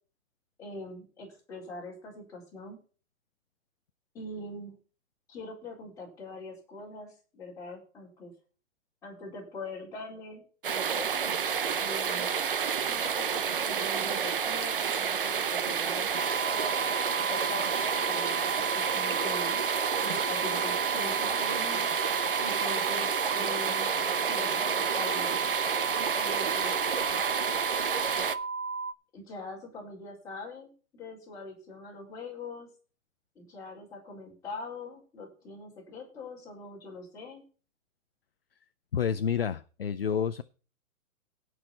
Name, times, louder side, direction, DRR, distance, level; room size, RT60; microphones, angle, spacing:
voice 1, 0.6-2.8 4.1-4.8 5.3-8.3 9.0-11.3 11.8-12.3 12.9-16.1 16.4-16.8 17.2-19.6 20.0-21.9 22.4-23.1 23.3-23.9 24.2-25.4 26.1-26.8 29.1-32.7 33.3-37.4, left 2 dB, 10° left, -6 dB, 4.3 m, -42 dB
sound 1, 10.6-28.4, right 7 dB, 40° right, 0.7 m, -30 dB
sound 2, 16.1-28.9, right 4 dB, 75° right, 1.1 m, -34 dB
voice 2, 38.9-40.4, left 7 dB, 45° left, 11 dB, 0.5 m, -29 dB
17.0 x 6.3 x 4.3 m, 0.37 s
hypercardioid pair, 180°, 42 cm